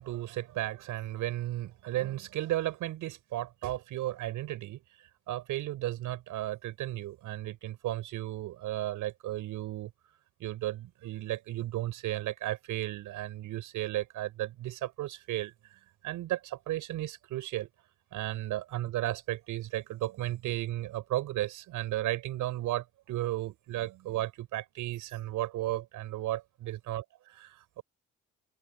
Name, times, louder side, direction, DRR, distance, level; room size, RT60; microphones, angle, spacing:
voice 1, 0.0-4.8 5.3-9.9 10.4-17.7 18.1-27.8, right 15 dB, 90° right, 5.4 m, -34 dB
cardioid pair, 90°, 30 cm